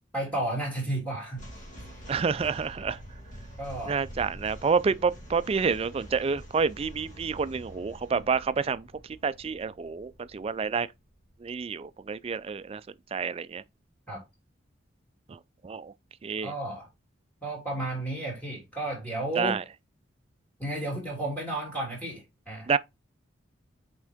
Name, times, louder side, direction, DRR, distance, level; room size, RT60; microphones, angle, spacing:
voice 1, 0.1-1.5 3.6-4.0 14.1-14.2 16.4-16.9 17.4-19.6 20.6-22.7, right 1 dB, 10° left, 3.1 m, -32 dB
sound 1, 1.3-12.6, equal, 45° left, 2.5 m, -47 dB
voice 2, 2.1-3.0 3.9-8.9 9.2-10.9 11.4-12.8 13.1-13.6 15.3-15.9 16.2-16.5 19.4-19.6 22.7-22.8, right 5 dB, 30° right, 0.3 m, -28 dB
6.2 x 4.4 x 3.5 m
head